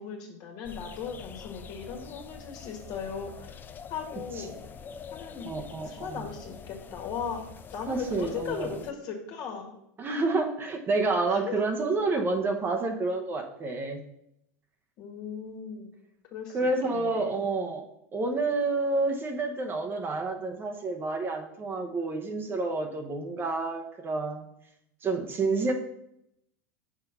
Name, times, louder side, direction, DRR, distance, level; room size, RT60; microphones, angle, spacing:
voice 1, 0.0-3.6 3.9-4.5 5.1-5.5 5.8-7.4 7.7-9.7 11.3-11.6 15.0-15.9 16.3-17.3, left 6 dB, 50° left, 2 dB, 1.7 m, -37 dB
sound 1, 0.6-8.9, left 6 dB, 25° left, 0.4 m, -46 dB
voice 2, 5.4-6.2 7.9-8.7 10.0-14.0 16.5-24.4 25.0-25.7, right 3 dB, 25° right, 3 dB, 0.9 m, -29 dB
5.9 x 4.4 x 5.4 m, 0.79 s
supercardioid pair, 120°, 8 cm